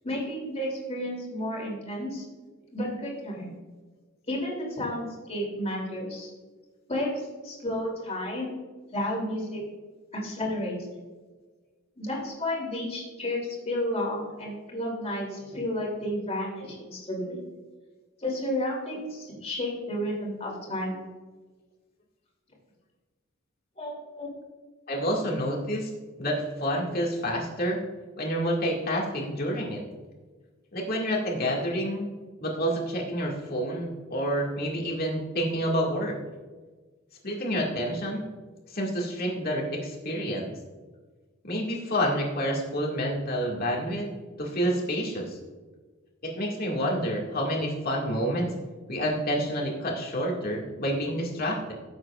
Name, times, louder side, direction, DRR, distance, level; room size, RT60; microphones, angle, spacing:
voice 1, 0.0-2.2 2.7-3.5 4.3-6.3 6.9-8.5 8.9-9.6 10.1-10.8 12.0-13.4 13.6-17.4 18.2-21.1 23.8-24.3, left 1 dB, 30° left, -2 dB, 3.0 m, -32 dB
voice 2, 24.9-25.9 26.2-27.8 28.2-29.8 30.7-32.1 32.4-36.2 37.2-38.2 38.7-40.5 41.4-44.1 44.4-45.4 46.2-48.5 48.9-51.7, equal, 45° left, -1 dB, 2.0 m, -28 dB
16.0 x 8.0 x 2.4 m, 1.4 s
head